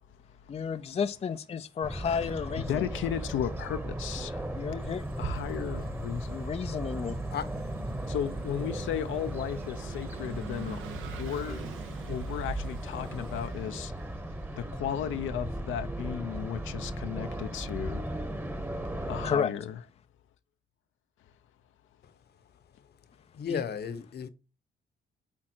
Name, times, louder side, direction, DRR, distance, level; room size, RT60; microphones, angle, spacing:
voice 1, 0.5-2.9 4.6-5.0 6.3-7.2 19.2-19.5 23.5-23.6, left 6 dB, 30° left, 0.5 m, -32 dB
sound 1, 1.8-19.3, right 1 dB, 10° right, 1.1 m, -37 dB
voice 2, 2.6-4.5 5.2-6.4 8.1-10.8 11.2-11.6 12.1-13.9 14.5-18.1 19.1-19.8, left 9 dB, 80° left, 0.7 m, -35 dB
sound 2, 4.8-13.5, right 3 dB, 50° right, 1.9 m, -45 dB
Vehicle / Engine, 5.3-15.0, right 6 dB, 80° right, 1.2 m, -48 dB
voice 3, 23.3-24.3, left 7 dB, 55° left, 1.0 m, -34 dB
8.7 x 3.7 x 4.4 m
cardioid pair, 90°, 20 cm